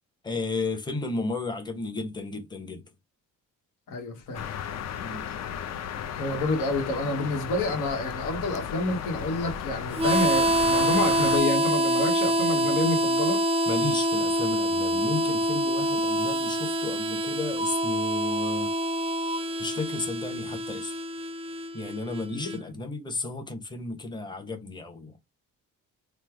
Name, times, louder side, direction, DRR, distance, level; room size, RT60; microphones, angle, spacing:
voice 1, 0.2-2.8 5.0-5.2 13.7-18.7 19.6-21.0 21.7-25.2, left 3 dB, 15° left, 0.8 m, -33 dB
voice 2, 3.9-4.5 6.2-13.4 22.3-22.8, left 2 dB, 85° left, 1.0 m, -29 dB
sound 1, 4.3-11.4, left 8 dB, 55° left, 0.6 m, -35 dB
Harmonica, 9.9-22.6, equal, 20° right, 0.4 m, -26 dB
3.2 x 2.1 x 3.3 m
cardioid pair, 100°, 31 cm